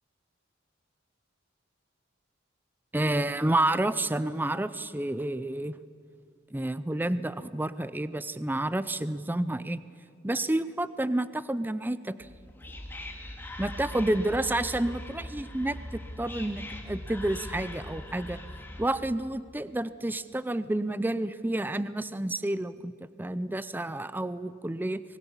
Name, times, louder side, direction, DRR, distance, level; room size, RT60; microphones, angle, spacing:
voice 1, 2.9-5.8 6.5-9.8 10.2-12.3 13.6-18.4 18.8-25.0, right 1 dB, 10° right, 15 dB, 0.4 m, -30 dB
Whispering, 12.2-19.1, left 1 dB, 10° left, 1.9 m, -41 dB
24.0 x 20.0 x 7.0 m, 2.3 s
head